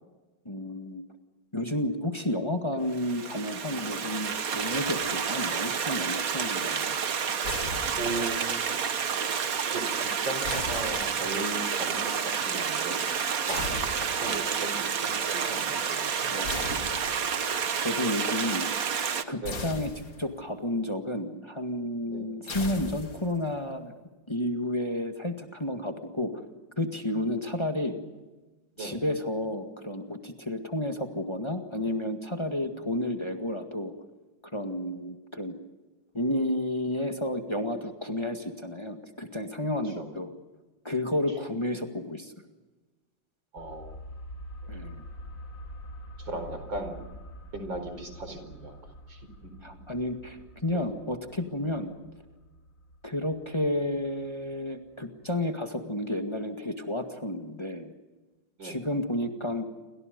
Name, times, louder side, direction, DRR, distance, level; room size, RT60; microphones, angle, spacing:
voice 1, 0.5-1.0 1.5-6.9 13.5-13.6 16.3-16.9 17.8-18.7 19.3-19.9 20.2-23.9 24.3-26.3 26.8-28.0 28.8-33.9 34.5-35.5 36.1-40.3 40.8-42.3 44.7-45.0 49.6-51.9 53.0-57.9 58.6-59.6, left 1 dB, 15° left, 5 dB, 1.9 m, -31 dB
Stream, 2.9-19.2, right 7 dB, 55° right, 1.6 m, -30 dB
sound 1, 7.4-8.4 10.4-11.5 13.5-14.4 16.4-17.5 19.4-20.4 22.5-23.5, left 3 dB, 80° left, 3.3 m, -38 dB
voice 2, 7.9-8.8 9.7-12.1 12.4-13.0 13.5-16.9 19.4-19.7 22.1-22.3 28.8-29.0 39.8-40.1 43.5-43.9 46.2-47.0 47.5-48.7 49.1-49.5 50.7-50.9 58.6-58.8, right 2 dB, 85° right, 7 dB, 5.3 m, -37 dB
sound 2, 43.6-54.9 55.2-55.3, equal, 45° left, 2.6 m, -46 dB
29.5 x 24.5 x 5.3 m, 1.2 s
omnidirectional pair, 2.0 m